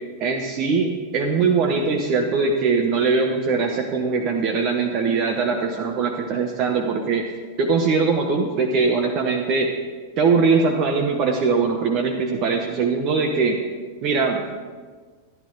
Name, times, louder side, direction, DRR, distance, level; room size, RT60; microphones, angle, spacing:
voice 1, 0.2-7.3 7.6-9.7 10.2-13.6 14.0-14.6, right 4 dB, 40° right, 2 dB, 1.0 m, -21 dB
13.0 x 10.5 x 3.9 m, 1.5 s
figure-of-eight pair, 90°, 0 cm